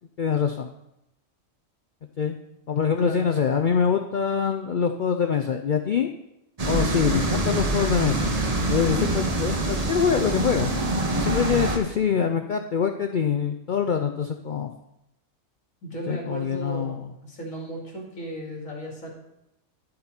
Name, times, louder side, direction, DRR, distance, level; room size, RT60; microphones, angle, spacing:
voice 1, 0.2-0.7 2.2-2.4 2.7-6.1 6.7-10.7 11.2-14.7 16.1-17.1, left 7 dB, 60° left, 5 dB, 0.5 m, -24 dB
voice 2, 3.0-3.3 8.9-9.3 11.3-11.5 15.8-19.1, equal, 75° left, -1 dB, 3.0 m, -35 dB
sound 1, 6.6-11.8, right 2 dB, 30° right, 1.2 m, -25 dB
11.0 x 7.6 x 4.4 m, 0.86 s
omnidirectional pair, 1.4 m